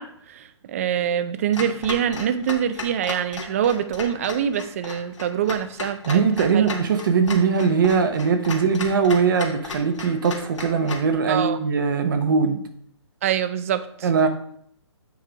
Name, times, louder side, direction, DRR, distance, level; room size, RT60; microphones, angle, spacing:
voice 1, 0.0-6.7 11.3-11.6 13.2-14.1, right 9 dB, 30° right, 12 dB, 0.5 m, -25 dB
Clock, 1.5-11.1, left 4 dB, 85° left, 1.6 m, -36 dB
voice 2, 6.0-12.6 14.0-14.3, right 5 dB, 45° right, 7 dB, 1.0 m, -20 dB
8.3 x 3.8 x 4.7 m, 0.66 s
hypercardioid pair, 160°, 15 cm